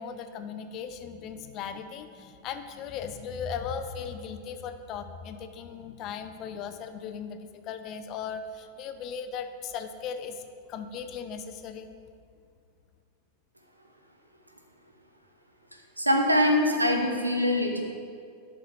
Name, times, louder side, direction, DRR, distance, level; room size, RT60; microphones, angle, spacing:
voice 1, 0.0-11.9, left 6 dB, 35° left, 9 dB, 0.5 m, -37 dB
voice 2, 16.0-17.8, left 1 dB, 85° right, 4 dB, 0.8 m, -23 dB
11.0 x 5.7 x 3.3 m, 2.3 s
figure-of-eight pair, 90°, 0 cm